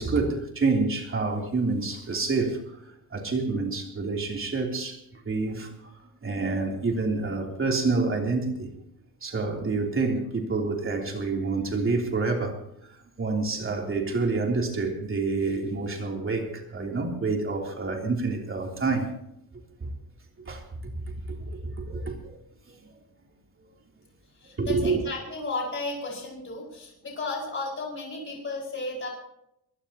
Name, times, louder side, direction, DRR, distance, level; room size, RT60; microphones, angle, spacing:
voice 1, 0.0-2.8 3.1-5.9 6.2-8.7 9.2-12.6 12.9-19.1 19.8-19.9 20.4-22.3 22.8-22.9 24.6-25.0, right 3 dB, 35° right, 3.3 m, -28 dB
voice 2, 24.4-29.1, left 3 dB, 35° left, 5.1 m, -34 dB
24.0 x 16.5 x 2.9 m
wide cardioid pair, 160°, 37 cm